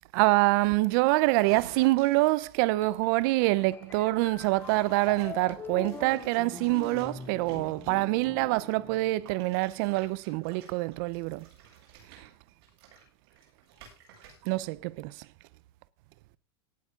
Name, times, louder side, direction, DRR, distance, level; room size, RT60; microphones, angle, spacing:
voice 1, 0.1-11.5 12.1-12.3 14.5-15.2, right 20 dB, 50° right, 0.6 m, -26 dB
sound 1, 1.4-2.7 4.6-5.3 5.8-8.3 9.3-14.7 14.9-15.2, right 7 dB, 70° right, 8.0 m, -53 dB
sound 2, 2.8-9.5, left 5 dB, 15° left, 2.0 m, -44 dB
18.5 x 8.4 x 3.7 m
supercardioid pair, 150°, 14 cm